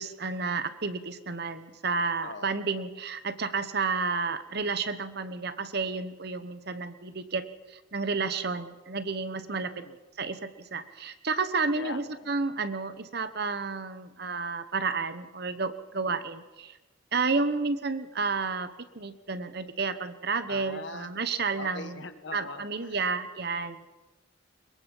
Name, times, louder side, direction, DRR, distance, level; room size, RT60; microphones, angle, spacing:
voice 1, 0.0-9.9 10.2-16.8 17.1-22.0 22.3-23.8, right 4 dB, 50° right, 11 dB, 1.1 m, -31 dB
voice 2, 2.0-2.8 9.5-10.0 11.7-12.3 16.1-16.3 20.5-21.1 21.6-23.1, left 3 dB, 60° left, 9 dB, 1.5 m, -42 dB
22.5 x 22.0 x 5.6 m, 1.1 s
head